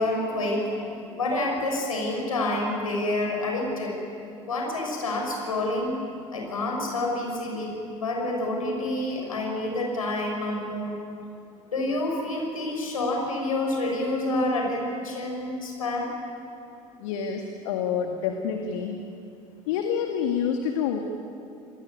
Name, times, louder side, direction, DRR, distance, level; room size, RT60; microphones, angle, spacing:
voice 1, 0.0-4.0 4.5-6.0 6.3-11.0 11.7-16.1, left 2 dB, 80° left, 0 dB, 6.5 m, -28 dB
voice 2, 17.0-19.0 19.7-21.0, left 7 dB, 65° left, 4 dB, 2.0 m, -27 dB
27.5 x 21.0 x 9.7 m, 2.6 s
figure-of-eight pair, 65°, 18 cm